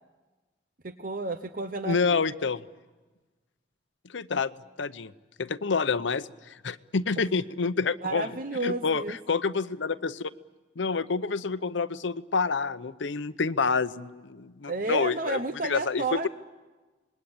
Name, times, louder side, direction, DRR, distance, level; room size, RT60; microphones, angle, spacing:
voice 1, 0.8-2.2 8.0-9.2 14.7-16.3, right 3 dB, 50° right, 9 dB, 0.8 m, -31 dB
voice 2, 1.8-2.6 4.1-4.5 4.8-5.1 5.4-6.3 6.6-8.3 8.6-10.3 10.8-16.3, left 4 dB, 90° left, 14 dB, 0.8 m, -28 dB
26.0 x 21.0 x 8.7 m, 1.2 s
head